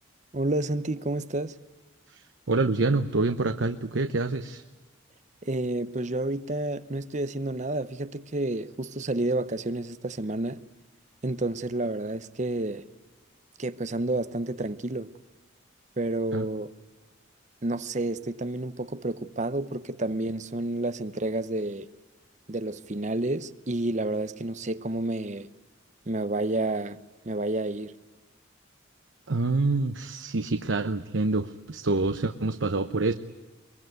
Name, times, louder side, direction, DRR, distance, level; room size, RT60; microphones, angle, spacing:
voice 1, 0.3-1.6 5.4-10.6 11.2-12.9 13.6-15.1 16.0-16.7 17.6-21.9 22.5-25.5 26.1-27.0 27.2-27.9, right 2 dB, 35° right, 0.8 m, -30 dB
voice 2, 2.1-4.6 16.3-16.4 29.3-33.1, right 3 dB, 65° right, 0.9 m, -26 dB
23.0 x 23.0 x 9.4 m
head